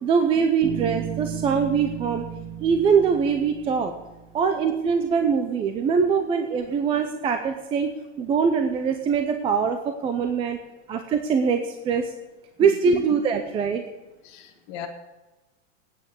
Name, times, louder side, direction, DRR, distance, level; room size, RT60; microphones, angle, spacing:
voice 1, 0.0-2.2 2.6-3.9 4.3-10.6 10.9-12.1 12.6-13.8, right 6 dB, 15° right, 6 dB, 0.5 m, -23 dB
Bass guitar, 0.6-4.3, right 9 dB, 40° right, 2.2 m, -34 dB
voice 2, 14.2-14.9, left 9 dB, 35° left, 1 dB, 1.7 m, -36 dB
9.2 x 9.1 x 8.4 m, 1.1 s
supercardioid pair, 155°, 37 cm